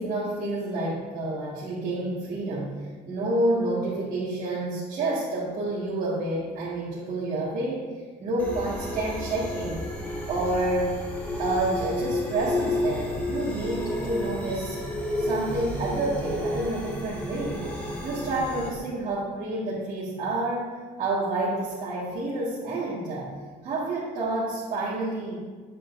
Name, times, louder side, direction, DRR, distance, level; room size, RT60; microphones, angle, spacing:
voice 1, 0.0-2.7 3.1-7.8 8.2-9.8 10.3-11.0 11.4-14.8 15.2-17.7 18.0-20.7 21.0-23.3 23.6-25.4, right 2 dB, 50° right, -10 dB, 2.0 m, -29 dB
sound 1, 8.4-18.7, left 1 dB, 10° left, 1.2 m, -31 dB
9.5 x 7.7 x 2.7 m, 1.4 s
cardioid pair, 175°, 17 cm